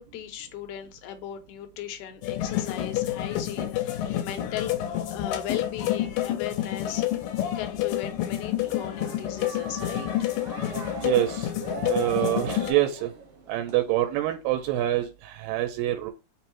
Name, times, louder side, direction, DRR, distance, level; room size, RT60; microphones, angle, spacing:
voice 1, 0.0-7.0 7.6-10.3, left 10 dB, 75° left, 2.0 m, -37 dB
sound 1, 2.2-12.7, left 12 dB, 90° left, 2.3 m, -29 dB
sound 2, 8.6-14.5 14.8-14.9, right 4 dB, 65° right, 1.3 m, -40 dB
voice 2, 11.0-11.5 11.9-13.1 13.5-16.1, right 14 dB, 90° right, 2.3 m, -26 dB
5.2 x 2.0 x 4.4 m
omnidirectional pair, 3.9 m